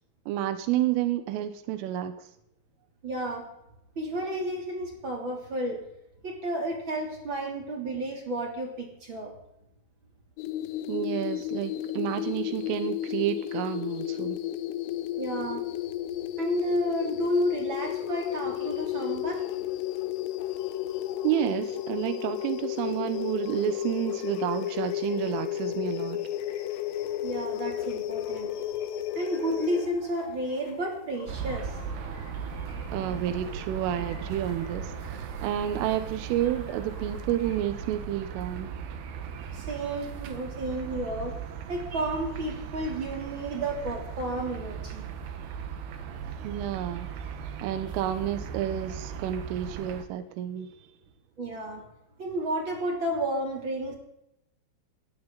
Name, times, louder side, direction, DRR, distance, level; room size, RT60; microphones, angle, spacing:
voice 1, 0.3-2.1 10.9-14.4 21.2-26.3 32.9-38.7 46.4-47.1 47.6-50.7, right 11 dB, 85° right, 10 dB, 3.6 m, -30 dB
voice 2, 3.0-3.5 3.9-5.8 6.2-9.3 15.2-15.6 16.4-19.4 27.2-28.5 29.1-31.7 39.5-41.4 41.7-45.1 51.4-51.8 52.2-53.9, right 1 dB, 30° right, 0 dB, 3.2 m, -31 dB
sound 1, 10.4-29.9, left 12 dB, 90° left, 3.4 m, -32 dB
sound 2, 17.7-37.6, left 6 dB, 65° left, 4.1 m, -51 dB
sound 3, 31.3-50.0, right 7 dB, 70° right, 2.9 m, -38 dB
18.0 x 16.5 x 4.0 m, 0.82 s
omnidirectional pair, 5.7 m